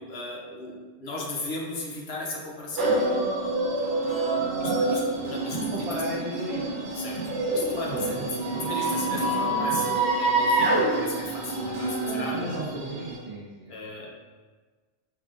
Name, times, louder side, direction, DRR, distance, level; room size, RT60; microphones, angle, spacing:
voice 1, 0.0-3.0 4.6-5.7 6.9-7.2 7.5-8.3 8.7-12.4 13.7-14.1, left 2 dB, 60° left, -2 dB, 1.0 m, -36 dB
sound 1, 2.8-13.2, right 2 dB, 75° right, 1.1 m, -27 dB
voice 2, 4.3-5.3 5.7-6.7 7.9-8.7 12.3-14.1, right 1 dB, 35° right, -7 dB, 0.6 m, -36 dB
4.8 x 3.7 x 2.5 m, 1.4 s
omnidirectional pair, 1.2 m